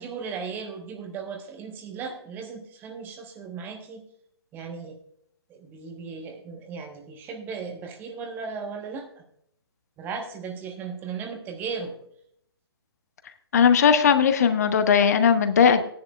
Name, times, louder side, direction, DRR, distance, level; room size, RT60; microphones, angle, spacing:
voice 1, 0.0-4.0 4.5-5.0 5.5-9.2 10.0-11.9, right 5 dB, 15° right, 5 dB, 1.1 m, -36 dB
voice 2, 13.5-15.8, left 7 dB, 40° left, 10 dB, 0.9 m, -18 dB
16.0 x 10.5 x 2.3 m, 0.70 s
figure-of-eight pair, 130°, 13 cm